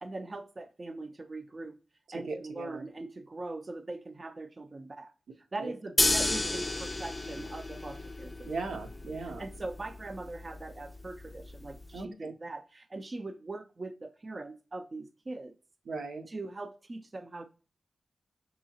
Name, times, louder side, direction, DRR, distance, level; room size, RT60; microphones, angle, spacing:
voice 1, 0.0-1.8 2.1-5.1 5.5-8.5 9.2-15.5 16.3-17.4, right 2 dB, 40° right, 0.4 m, -41 dB
voice 2, 2.1-2.9 5.6-5.7 8.4-9.5 11.9-12.3 15.9-16.3, right 3 dB, 90° right, 0.6 m, -38 dB
sound 1, 6.0-12.0, left 2 dB, 25° left, 0.4 m, -33 dB
6.0 x 2.8 x 2.8 m
cardioid pair, 55°, 0 cm